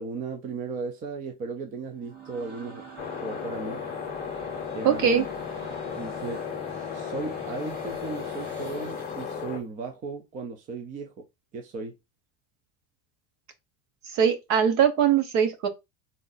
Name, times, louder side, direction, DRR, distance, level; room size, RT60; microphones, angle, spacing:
voice 1, 0.0-2.8 3.2-3.8 4.7-5.3 5.9-6.5 6.9-11.2 11.5-12.0, right 4 dB, 25° right, 0.5 m, -36 dB
sound 1, 1.8-9.5, right 4 dB, 80° right, 2.1 m, -46 dB
sound 2, 3.0-9.6, left 7 dB, 25° left, 0.8 m, -35 dB
voice 2, 4.8-5.2 14.1-15.7, right 8 dB, 55° right, 1.0 m, -21 dB
3.7 x 2.6 x 4.0 m
cardioid pair, 165°, 36 cm